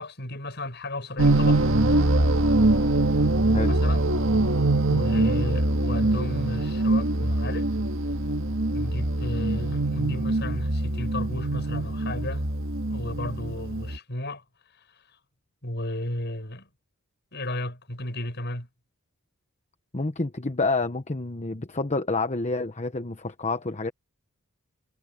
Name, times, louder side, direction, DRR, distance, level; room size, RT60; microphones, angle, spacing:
voice 1, 0.0-1.6 3.7-4.1 4.9-7.7 8.7-12.5 12.9-14.4 14.8-15.0 15.6-16.7 17.3-18.7, left 1 dB, 50° left, 6.8 m, -33 dB
sound 1, 1.2-14.0, right 2 dB, 60° right, 1.9 m, -23 dB
voice 2, 19.9-23.9, left 3 dB, 30° left, 1.0 m, -28 dB
head